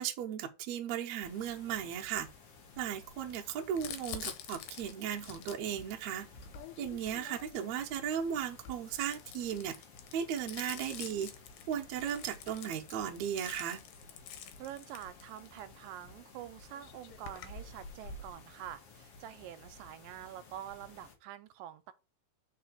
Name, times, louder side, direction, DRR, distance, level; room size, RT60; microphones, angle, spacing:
voice 1, 0.0-2.3 2.8-6.3 6.8-9.8 10.1-11.3 11.7-13.8, right 9 dB, 70° right, 1.9 m, -36 dB
sound 1, 1.2-21.1, left 4 dB, 55° left, 1.8 m, -56 dB
Crumpling crinkling, 3.8-7.8 8.5-15.6 16.4-16.5 16.7-18.3, left 7 dB, 80° left, 2.5 m, -47 dB
voice 2, 14.6-21.9, right 11 dB, 90° right, 2.3 m, -46 dB
4.8 x 4.3 x 5.9 m
omnidirectional pair, 3.9 m